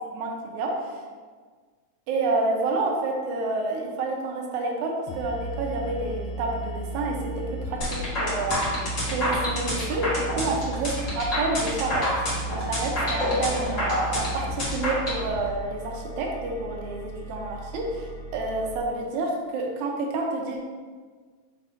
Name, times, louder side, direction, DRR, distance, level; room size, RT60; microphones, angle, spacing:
voice 1, 0.1-0.9 2.1-8.8 9.1-20.6, right 3 dB, 75° right, 0 dB, 2.1 m, -29 dB
sound 1, 5.1-18.8, right 1 dB, 80° left, 2.2 m, -35 dB
sound 2, 7.8-15.2, left 1 dB, 35° left, 1.5 m, -27 dB
5.5 x 4.1 x 4.2 m, 1.5 s
omnidirectional pair, 3.5 m